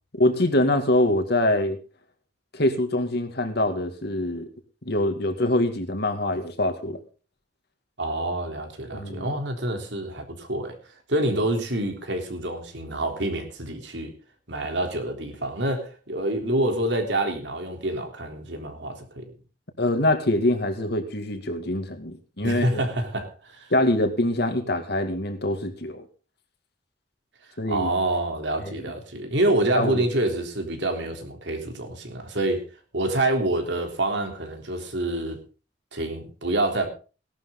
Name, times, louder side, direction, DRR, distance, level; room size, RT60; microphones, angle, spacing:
voice 1, 0.2-1.8 2.5-4.5 4.9-7.0 8.9-9.3 19.8-22.7 23.7-26.0 27.6-27.9 28.7-28.8 29.7-30.0, left 1 dB, 60° left, 7 dB, 2.3 m, -24 dB
voice 2, 8.0-10.7 11.1-14.1 14.5-19.2 22.4-23.7 27.7-32.6 32.9-35.4 35.9-36.9, right 1 dB, 70° right, 4 dB, 3.6 m, -27 dB
18.0 x 11.5 x 3.9 m, 0.35 s
head